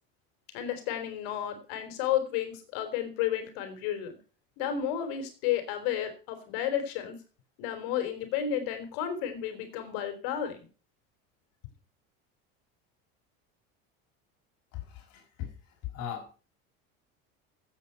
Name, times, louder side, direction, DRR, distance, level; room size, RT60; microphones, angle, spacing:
voice 1, 0.5-4.2 4.6-7.2 7.6-10.7, left 10 dB, 75° left, 7 dB, 3.4 m, -32 dB
voice 2, 14.7-15.5 15.9-16.4, left 10 dB, 55° left, 2 dB, 5.8 m, -39 dB
15.0 x 8.2 x 5.6 m, 0.37 s
supercardioid pair, 130°, 30 cm